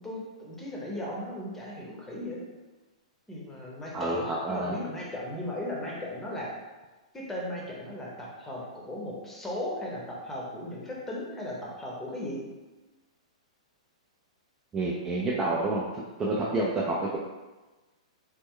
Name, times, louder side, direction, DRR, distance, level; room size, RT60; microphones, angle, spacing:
voice 1, 0.0-2.5 3.3-6.6 7.1-12.5, left 1 dB, 10° left, -4 dB, 0.7 m, -37 dB
voice 2, 3.9-4.8 14.7-15.8 16.2-17.2, right 2 dB, 15° right, -5 dB, 0.3 m, -28 dB
3.1 x 2.1 x 3.6 m, 1.2 s
hypercardioid pair, 145°, 4 cm